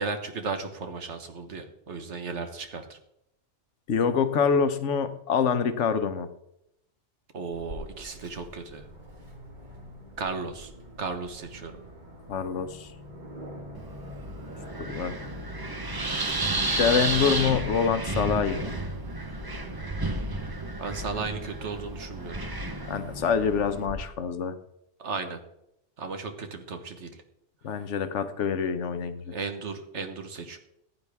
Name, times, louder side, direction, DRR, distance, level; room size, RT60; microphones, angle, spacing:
voice 1, 0.0-3.0 7.3-8.9 10.2-10.7 11.0-11.8 20.8-22.4 25.0-25.4 26.0-27.2 29.3-30.6, right 4 dB, 70° right, 7 dB, 1.5 m, -35 dB
voice 2, 3.9-6.3 12.3-12.9 14.8-15.2 16.6-18.8 22.9-24.6 27.6-29.3, left 6 dB, 75° left, 10 dB, 1.2 m, -26 dB
Aircraft, 7.5-23.9, equal, 40° right, 2.2 m, -45 dB
Wind, 13.7-23.9, right 2 dB, 20° right, 0.8 m, -32 dB
15.0 x 9.1 x 3.5 m, 0.79 s
omnidirectional pair, 1.2 m